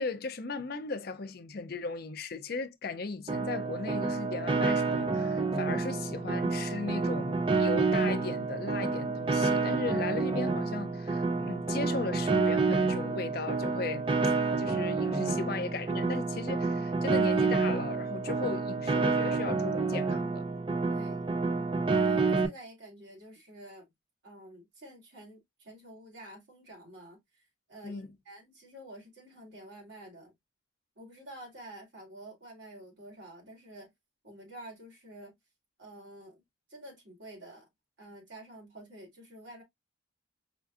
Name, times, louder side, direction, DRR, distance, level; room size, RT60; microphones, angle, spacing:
voice 1, 0.0-20.4 27.8-28.2, left 4 dB, 50° left, 0.5 m, -37 dB
Piano, 3.3-22.5, right 4 dB, 25° right, 0.4 m, -29 dB
voice 2, 20.9-21.3 21.9-23.9 24.2-30.3 31.0-33.9 34.2-35.3 35.8-36.4 36.7-37.7 38.0-39.6, right 1 dB, 65° right, 2.3 m, -49 dB
5.0 x 2.5 x 2.4 m
head